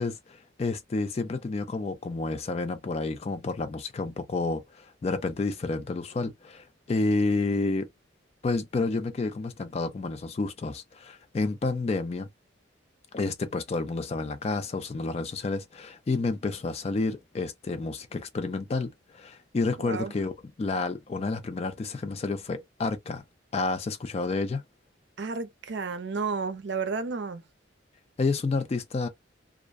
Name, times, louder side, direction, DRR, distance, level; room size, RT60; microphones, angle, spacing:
voice 1, 0.0-7.9 8.4-12.3 13.1-20.3 20.6-23.2 23.5-24.6 28.2-29.1, left 3 dB, 30° left, 0.3 m, -30 dB
voice 2, 19.8-20.1 25.2-27.4, right 4 dB, 65° right, 0.5 m, -32 dB
2.4 x 2.1 x 2.3 m
head